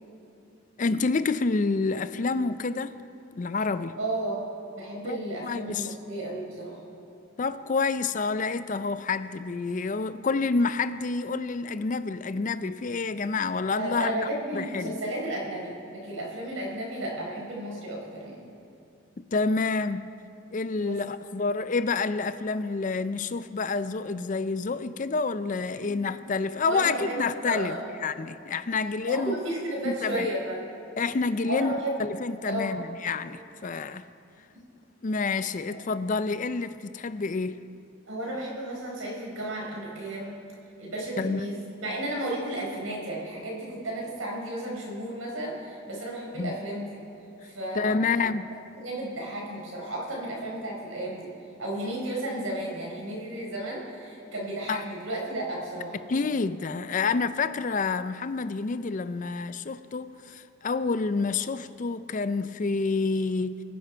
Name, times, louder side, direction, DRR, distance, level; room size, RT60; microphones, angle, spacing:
voice 1, 0.8-2.9 3.3-4.0 5.0-5.9 7.4-14.2 14.5-15.0 19.3-20.1 20.5-27.8 28.0-29.4 29.9-30.3 31.0-31.7 32.0-34.1 35.0-37.6 41.2-41.4 46.4-46.6 47.7-48.5 54.7-54.8 56.1-63.6, left 4 dB, 40° left, 0.4 m, -28 dB
voice 2, 3.9-4.5 4.8-6.8 13.7-18.5 20.8-21.0 25.8-26.0 26.7-27.8 29.1-30.6 31.4-32.0 32.4-32.8 34.5-34.6 38.1-40.3 40.8-47.0 47.4-48.1 48.8-51.3 51.6-56.0, right 1 dB, 90° right, 4.6 m, -33 dB
24.5 x 10.5 x 4.5 m
head